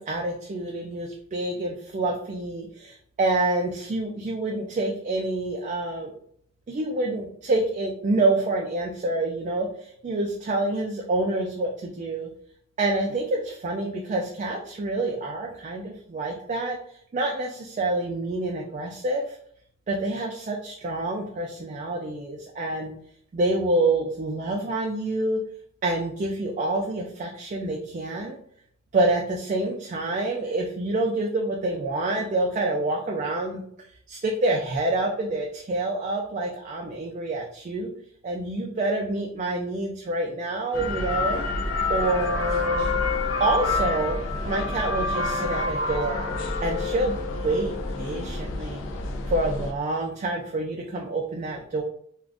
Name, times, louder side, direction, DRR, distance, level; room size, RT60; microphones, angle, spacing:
voice 1, 0.0-6.1 6.7-12.3 12.8-16.8 17.1-19.4 19.9-22.9 23.3-25.4 25.8-28.4 28.9-33.6 34.1-37.9 38.2-41.4 41.9-42.9 43.4-44.2 44.4-47.2 47.4-48.8 49.3-51.8, right 2 dB, 40° right, 1 dB, 0.3 m, -27 dB
sound 1, 40.7-49.7, left 2 dB, 80° left, 0.5 m, -28 dB
2.4 x 2.4 x 3.3 m, 0.66 s
head